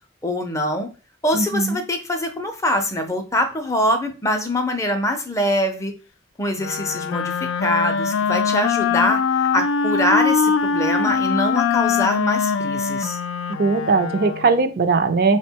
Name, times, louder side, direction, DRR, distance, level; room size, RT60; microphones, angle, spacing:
voice 1, 0.2-0.9 1.2-5.9 6.4-13.2, left 1 dB, 15° left, 6 dB, 0.5 m, -23 dB
voice 2, 1.3-1.8 13.6-15.4, right 4 dB, 50° right, 8 dB, 0.4 m, -19 dB
Wind instrument woodwind instrument, 6.6-14.6, left 6 dB, 90° left, 0.4 m, -22 dB
3.6 x 2.1 x 4.4 m, 0.34 s
head